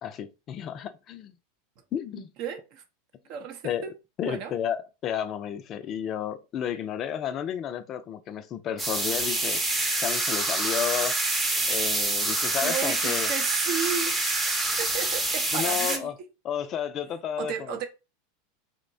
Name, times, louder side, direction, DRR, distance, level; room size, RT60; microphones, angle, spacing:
voice 1, 0.0-1.3 1.9-2.3 3.6-9.6 10.0-11.4 11.7-13.3 15.5-16.1 16.4-17.8, left 9 dB, 40° left, 0.3 m, -32 dB
voice 2, 2.2-2.8 3.3-3.9 4.2-4.5 12.6-14.2 14.4-16.1 17.4-17.8, right 8 dB, 55° right, 0.6 m, -33 dB
sound 1, 8.8-16.0, right 2 dB, 15° right, 0.7 m, -26 dB
2.9 x 2.1 x 2.5 m
hypercardioid pair, 95°, 0 cm